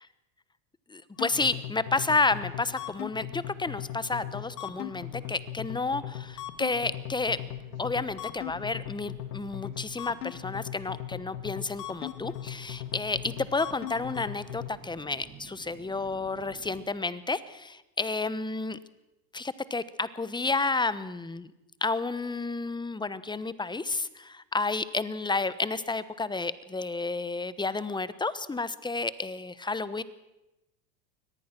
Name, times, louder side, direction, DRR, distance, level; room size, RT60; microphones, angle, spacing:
voice 1, 0.9-7.4 7.8-18.8 19.3-21.5 21.8-30.0, left 3 dB, 10° left, 16 dB, 1.1 m, -31 dB
sound 1, 1.2-14.7, left 12 dB, 80° left, 1.9 m, -39 dB
sound 2, 1.3-16.9, right 5 dB, 50° right, 5.8 m, -55 dB
23.5 x 18.5 x 6.1 m, 0.98 s
hypercardioid pair, 95°, 47 cm